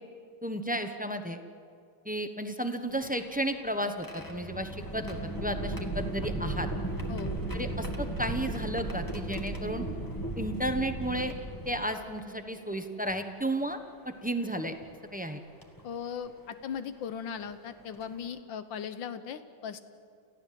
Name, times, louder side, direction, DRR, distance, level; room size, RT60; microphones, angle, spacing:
voice 1, 0.4-1.4 2.0-6.7 7.5-9.8 10.4-11.3 11.6-13.8 14.0-14.7 15.1-15.4, right 1 dB, 10° right, 7 dB, 0.6 m, -33 dB
sound 1, 2.9-12.2 13.1-13.2 14.6-14.9 15.6-15.8 17.4-17.5 17.9-18.2, right 1 dB, 10° left, 1.7 m, -36 dB
voice 2, 7.1-7.4 15.8-19.8, left 7 dB, 75° left, 11 dB, 1.7 m, -38 dB
29.0 x 15.0 x 7.6 m, 2.4 s
omnidirectional pair, 2.1 m